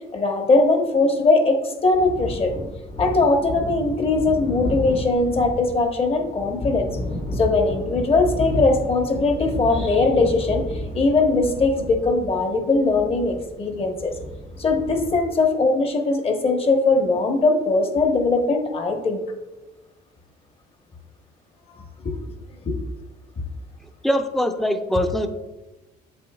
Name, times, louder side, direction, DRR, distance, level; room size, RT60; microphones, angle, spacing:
voice 1, 0.1-2.5 3.0-6.9 7.3-14.1 14.6-19.2 21.7-22.1 22.6-22.7, left 3 dB, 35° left, 4 dB, 1.1 m, -20 dB
sound 1, 1.8-15.2, left 1 dB, 85° left, 2.2 m, -32 dB
voice 2, 24.0-25.3, equal, ahead, 6 dB, 0.6 m, -22 dB
8.3 x 7.0 x 2.3 m, 1.1 s
cardioid pair, 110°, 17 cm